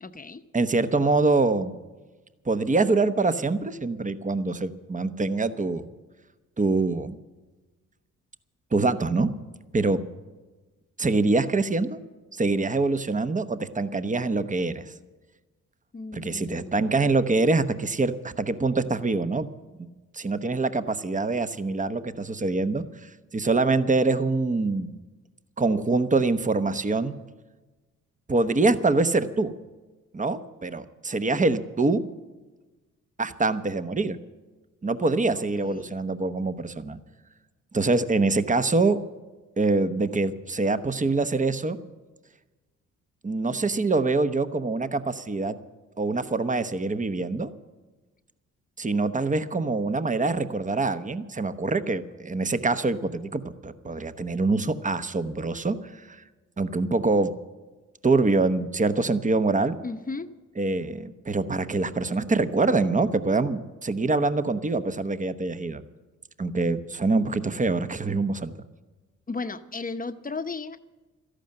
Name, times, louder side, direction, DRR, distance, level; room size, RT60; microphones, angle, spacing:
voice 1, 0.0-0.4 15.9-17.0 35.6-36.0 59.8-60.3 69.3-70.8, left 3 dB, 25° left, 9 dB, 0.9 m, -35 dB
voice 2, 0.5-1.7 2.5-5.9 6.6-7.2 8.7-9.3 9.7-10.0 11.0-12.0 12.3-14.8 16.1-19.5 20.1-25.0 25.6-27.1 28.3-29.5 30.1-32.0 33.2-34.2 34.8-37.0 37.7-39.0 39.6-41.8 43.2-45.6 46.0-47.5 48.8-56.2 56.6-57.3 58.0-59.8 60.6-65.8 66.4-68.5, right 3 dB, 25° right, 11 dB, 1.0 m, -25 dB
13.5 x 11.5 x 7.8 m, 1.2 s
supercardioid pair, 60°, 32 cm